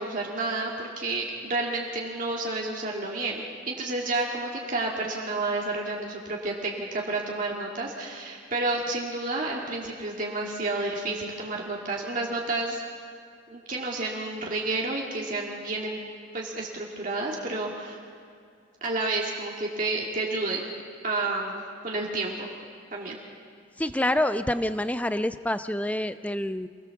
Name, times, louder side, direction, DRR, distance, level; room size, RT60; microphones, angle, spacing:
voice 1, 0.0-12.8 13.5-16.0 16.3-18.0 18.8-20.7 21.0-22.5 22.9-23.2, right 2 dB, 40° right, -2 dB, 2.3 m, -30 dB
voice 2, 23.8-26.7, left 1 dB, 5° left, 11 dB, 0.6 m, -27 dB
28.0 x 18.0 x 7.2 m, 2.4 s
head